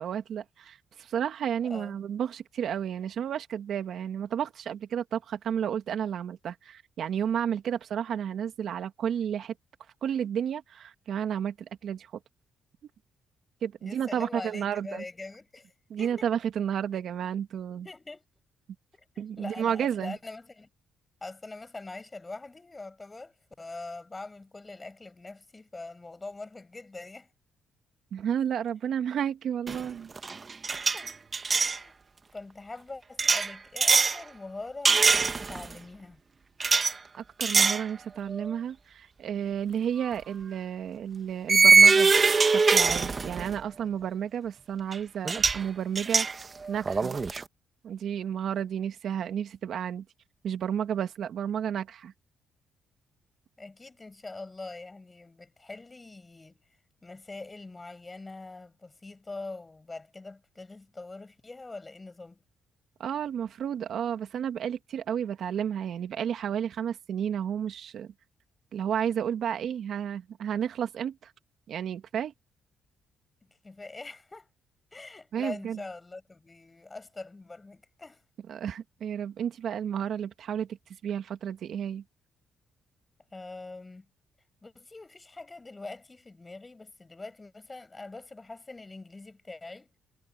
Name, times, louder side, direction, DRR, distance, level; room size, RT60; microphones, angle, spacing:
voice 1, 0.0-9.5 10.0-12.1 13.6-15.0 15.9-17.9 19.2-20.2 28.1-30.1 37.2-42.1 42.4-46.3 46.7-47.2 47.8-50.0 50.4-52.1 63.0-68.1 68.7-71.3 71.7-72.3 75.3-75.8 78.5-80.7 81.0-82.0, right 8 dB, 65° right, 2.1 m, -32 dB
voice 2, 1.6-2.0 13.8-15.7 16.0-16.3 17.8-18.2 18.9-20.7 21.2-27.3 30.9-31.1 31.5-32.0 32.3-36.2 53.6-56.6 57.0-62.4 73.6-74.5 74.9-78.2 83.3-84.1 84.6-89.9, left 3 dB, 20° left, 6.0 m, -43 dB
sound 1, 29.7-29.9 30.2-31.8 33.2-34.2 34.9-35.7 36.6-36.9 37.4-37.9 38.3-38.5 40.0-40.1 41.5-43.6 44.9-45.0 45.3-45.6 46.0-47.4, right 4 dB, 35° right, 1.2 m, -22 dB
cardioid pair, 90°, 0 cm